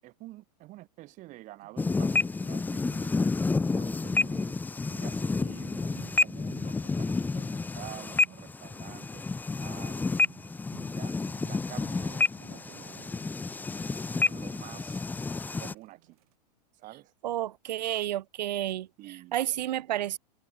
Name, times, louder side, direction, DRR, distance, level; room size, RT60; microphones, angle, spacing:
voice 1, 0.0-4.6 4.9-10.1 10.9-13.3 14.1-15.0 15.6-16.2 16.7-17.1 19.0-19.4, right 18 dB, 35° right, 7.8 m, -49 dB
sound 1, 1.6-16.4, right 18 dB, 60° right, 7.2 m, -58 dB
sound 2, 1.8-15.7, left 3 dB, 10° left, 1.2 m, -30 dB
voice 2, 17.2-18.9 19.3-20.2, right 12 dB, 85° right, 0.7 m, -30 dB
hypercardioid pair, 135°, 21 cm